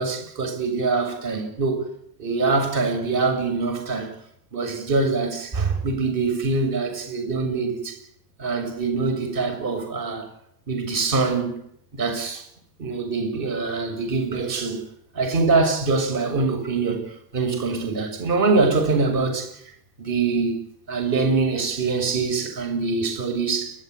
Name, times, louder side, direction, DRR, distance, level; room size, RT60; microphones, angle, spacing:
voice 1, 0.0-1.8 2.2-4.1 4.5-8.0 8.4-10.3 10.7-11.6 11.9-12.4 12.8-14.8 15.1-19.6 20.0-20.6 20.9-23.7, right 4 dB, 45° right, 7.0 m, -24 dB
30.0 x 13.0 x 9.5 m
supercardioid pair, 130°, 46 cm